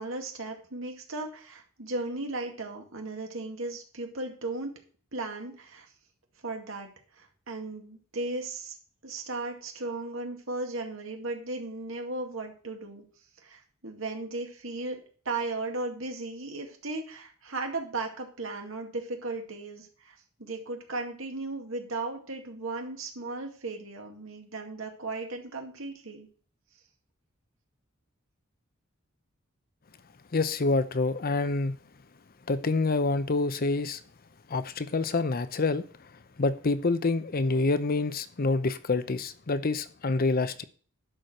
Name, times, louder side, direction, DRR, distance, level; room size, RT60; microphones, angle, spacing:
voice 1, 0.0-4.8 5.1-5.9 6.4-6.9 7.2-8.8 9.0-13.0 13.4-15.0 15.3-26.3, right 2 dB, 75° right, 2.2 m, -36 dB
voice 2, 30.3-31.8 32.5-34.0 34.5-35.8 36.4-40.6, left 3 dB, 45° left, 0.7 m, -27 dB
11.0 x 4.6 x 6.5 m
head